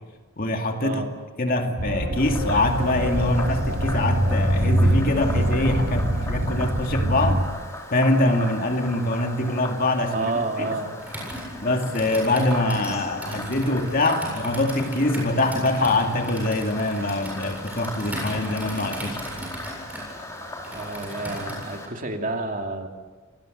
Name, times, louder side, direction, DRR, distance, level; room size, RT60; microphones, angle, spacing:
voice 1, 0.4-1.0 1.4-7.4 7.9-10.3 10.6-10.7 11.6-19.2, left 2 dB, 45° left, 4 dB, 2.4 m, -24 dB
sound 1, 1.8-7.4, right 1 dB, 70° right, 4.5 m, -24 dB
Frog, 2.2-21.9, left 1 dB, 15° left, 4.2 m, -38 dB
voice 2, 10.1-10.9 20.7-22.9, right 2 dB, 40° right, 3 dB, 2.8 m, -29 dB
Computer keyboard, 11.0-21.8, right 1 dB, 5° right, 7.7 m, -37 dB
28.0 x 20.0 x 7.9 m, 1.4 s
head